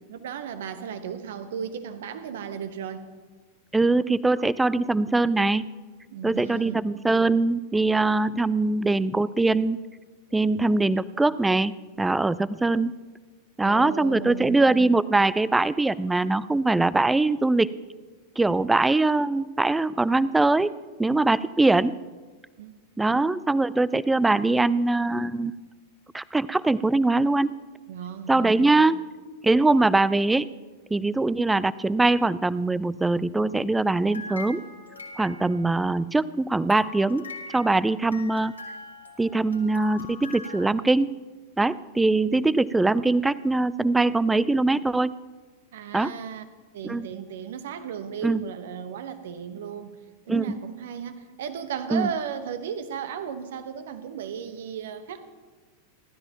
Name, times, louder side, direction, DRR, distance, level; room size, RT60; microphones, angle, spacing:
voice 1, 0.1-3.1 6.1-6.8 13.6-14.6 22.6-22.8 27.9-28.8 45.7-46.4 46.7-50.0 50.3-55.2, right 8 dB, 60° right, 11 dB, 1.2 m, -35 dB
voice 2, 3.7-5.7 6.2-9.8 10.3-12.9 13.6-17.7 18.4-21.9 23.0-25.5 26.1-27.5 28.3-29.0 29.4-30.5 30.9-34.6 35.2-38.5 39.2-41.1 41.6-45.1 45.9-46.1 46.8-47.1 48.2-48.4 50.3-50.6 51.9-52.1, right 2 dB, 10° right, 19 dB, 0.4 m, -22 dB
sound 1, 34.1-35.9 36.7-40.7, left 3 dB, 80° left, 2.0 m, -42 dB
30.0 x 12.5 x 3.0 m, 1.3 s
figure-of-eight pair, 90°, 0 cm